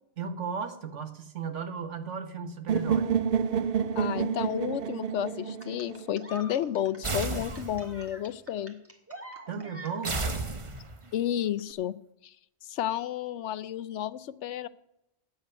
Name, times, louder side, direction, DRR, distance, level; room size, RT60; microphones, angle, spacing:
voice 1, 0.2-3.1 9.5-10.3, right 6 dB, 80° right, 9 dB, 1.6 m, -35 dB
sound 1, 2.7-6.6, right 7 dB, 55° right, 0.8 m, -29 dB
voice 2, 4.0-8.8 11.1-11.9 12.2-12.4 12.6-14.7, left 11 dB, 75° left, 16 dB, 0.9 m, -31 dB
sound 2, 5.6-10.4 11.6-11.7, right 1 dB, 10° right, 1.7 m, -46 dB
sound 3, 7.0-8.0 10.0-11.1, right 3 dB, 30° right, 0.9 m, -33 dB
9.3 x 8.2 x 9.2 m, 0.83 s
omnidirectional pair, 1.2 m